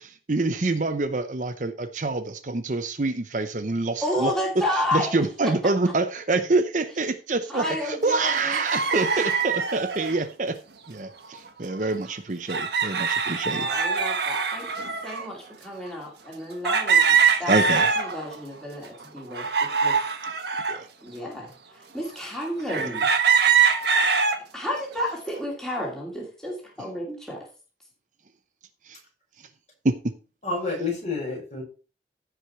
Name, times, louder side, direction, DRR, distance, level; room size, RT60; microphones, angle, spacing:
voice 1, 0.3-4.3 4.9-10.6 10.9-13.7 17.5-17.8 20.7-20.9 29.8-30.0, right 3 dB, 45° right, 0.7 m, -26 dB
voice 2, 4.0-5.5 7.5-8.6 8.9-9.2 13.4-20.0 21.0-23.1 24.5-27.4, left 1 dB, 5° left, 2.5 m, -31 dB
sound 1, 8.2-10.2 11.3-11.5 11.8-11.9 12.5-15.3 15.9-16.0 16.6-18.4 18.8-20.8 21.4-21.5 22.7-24.4 24.9-25.4, right 6 dB, 65° right, 1.4 m, -23 dB
voice 3, 30.4-31.6, left 3 dB, 40° left, 5.5 m, -29 dB
15.0 x 5.1 x 4.4 m
head